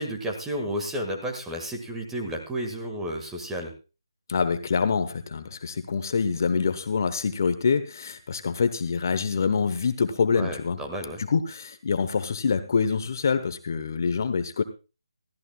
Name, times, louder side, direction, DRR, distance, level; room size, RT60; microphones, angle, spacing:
voice 1, 0.0-3.7 10.4-11.2, equal, 5° right, 2 dB, 1.8 m, -32 dB
voice 2, 4.3-10.8 11.2-14.6, left 5 dB, 40° left, 10 dB, 1.0 m, -25 dB
21.5 x 14.0 x 2.3 m, 0.31 s
figure-of-eight pair, 160°, 3 cm